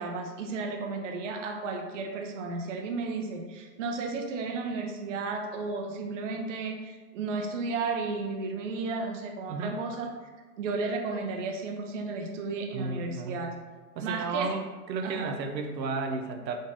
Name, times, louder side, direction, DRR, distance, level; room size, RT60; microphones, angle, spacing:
voice 1, 0.0-10.1 10.6-13.5 14.0-14.5 15.0-15.3, right 3 dB, 50° right, 2 dB, 0.7 m, -33 dB
voice 2, 9.5-9.8 12.7-13.4 14.0-14.6 14.9-16.6, right 4 dB, 85° right, 4 dB, 0.8 m, -33 dB
5.3 x 3.6 x 2.6 m, 1.3 s
hypercardioid pair, 150°, 49 cm